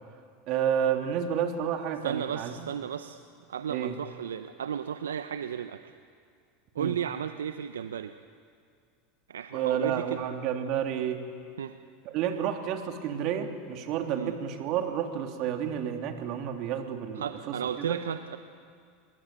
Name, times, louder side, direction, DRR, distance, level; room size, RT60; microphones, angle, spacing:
voice 1, 0.5-2.7 3.7-3.9 6.8-6.9 9.5-11.2 12.0-18.0, right 9 dB, 55° right, 4 dB, 3.2 m, -30 dB
voice 2, 2.0-3.2 3.5-5.9 6.7-8.1 9.3-10.2 11.6-11.7 14.2-14.3 17.2-18.4, right 8 dB, 85° right, 9 dB, 0.8 m, -34 dB
25.5 x 22.0 x 9.1 m, 2.2 s
hypercardioid pair, 85°, 0 cm